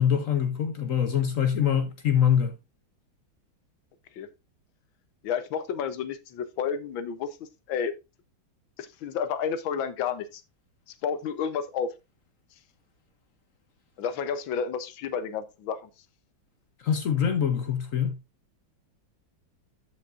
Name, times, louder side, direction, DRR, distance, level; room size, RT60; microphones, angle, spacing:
voice 1, 0.0-2.5 16.8-18.2, left 8 dB, 55° left, 0.9 m, -24 dB
voice 2, 5.2-7.3 7.7-7.9 8.8-10.4 11.0-11.9 14.0-15.8, left 7 dB, 90° left, 1.6 m, -30 dB
13.5 x 5.2 x 2.4 m
omnidirectional pair, 2.1 m